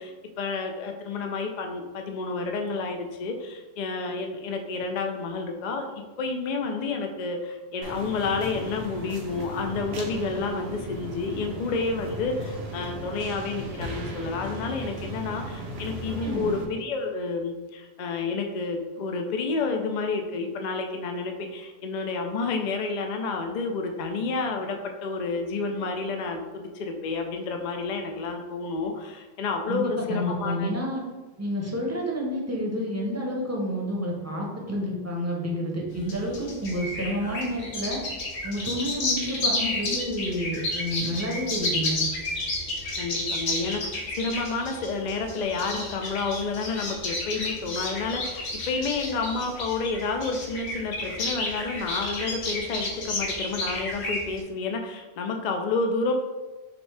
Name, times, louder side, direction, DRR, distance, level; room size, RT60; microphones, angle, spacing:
voice 1, 0.0-30.7 31.6-31.9 39.3-39.5 43.0-56.1, left 4 dB, 55° left, 3 dB, 0.5 m, -30 dB
sound 1, 7.8-16.7, right 1 dB, 70° right, 0.9 m, -36 dB
voice 2, 16.2-16.5 29.7-31.0 31.4-38.0 38.4-42.0, equal, 15° right, -2 dB, 0.7 m, -29 dB
sound 2, 35.9-54.4, left 2 dB, 80° left, 1.2 m, -31 dB
5.9 x 2.7 x 3.3 m, 1.2 s
omnidirectional pair, 1.1 m